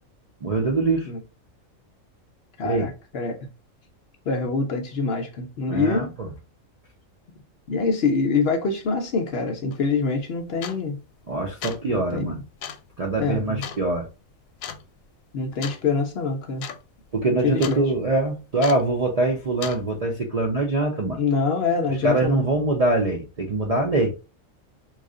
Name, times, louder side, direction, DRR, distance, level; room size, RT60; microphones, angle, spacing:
voice 1, 0.4-1.1 2.6-2.9 5.7-6.3 11.3-12.4 13.0-14.1 17.1-21.2 22.0-24.1, right 2 dB, 50° right, 0.5 m, -23 dB
voice 2, 2.6-3.3 4.3-6.1 7.7-11.0 11.8-12.4 13.2-13.6 15.3-16.7 17.4-17.8 21.0-22.4, left 4 dB, 60° left, 0.7 m, -25 dB
sound 1, 9.7-9.8 10.6-11.0 11.4-11.9 12.6-12.9 13.6-13.8 14.6-14.8 15.6-15.8 16.1-16.2 16.5-16.8 17.1-17.8 18.6-18.9 19.6-19.8, left 8 dB, 90° left, 1.0 m, -35 dB
3.1 x 2.4 x 3.6 m
omnidirectional pair, 1.4 m